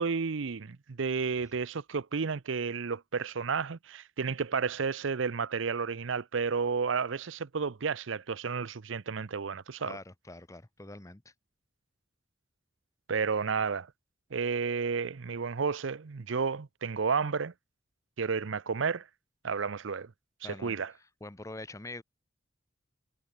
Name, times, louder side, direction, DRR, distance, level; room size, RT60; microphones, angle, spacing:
voice 1, 0.0-10.0 13.1-13.9 14.3-17.5 18.2-19.0 19.4-20.1 20.4-20.9, right 5 dB, 70° right, 0.6 m, -31 dB
voice 2, 9.8-11.3 20.4-20.8 21.2-22.0, left 2 dB, 15° left, 0.9 m, -44 dB
head